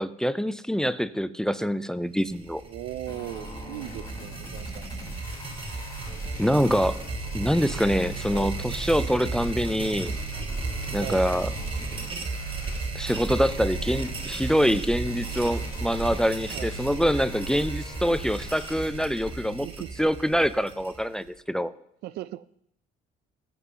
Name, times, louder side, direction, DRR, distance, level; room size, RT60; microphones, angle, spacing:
voice 1, 0.0-2.6 6.4-7.0 7.3-10.1 10.9-11.5 12.9-19.7 20.0-21.7, equal, 5° left, 15 dB, 0.3 m, -25 dB
sound 1, 2.2-21.3, right 3 dB, 30° right, 1.3 m, -34 dB
voice 2, 2.6-4.9 8.3-8.8 11.0-11.2 16.5-16.9 19.6-19.9 22.0-22.6, right 15 dB, 75° right, 18 dB, 0.4 m, -38 dB
sound 2, 3.1-19.1, left 2 dB, 25° left, 3.5 m, -44 dB
21.0 x 7.9 x 2.8 m, 0.77 s
cardioid pair, 110°, 17 cm